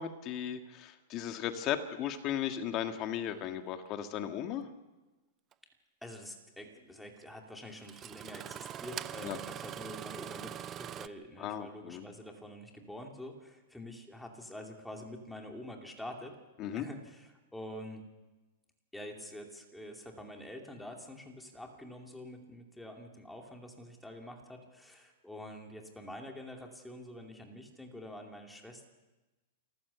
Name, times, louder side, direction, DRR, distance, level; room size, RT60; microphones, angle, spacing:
voice 1, 0.0-4.7 9.2-9.4 11.4-12.1 16.6-16.9, left 10 dB, 35° left, 7 dB, 1.7 m, -36 dB
Engine starting, 5.5-5.6 7.2-7.3 7.8-11.1, right 10 dB, 25° right, 0.6 m, -42 dB
voice 2, 6.0-16.4 16.7-18.0 18.9-28.8, left 1 dB, 5° left, 2 dB, 2.6 m, -47 dB
28.0 x 14.5 x 6.9 m, 1.1 s
supercardioid pair, 150°, 0 cm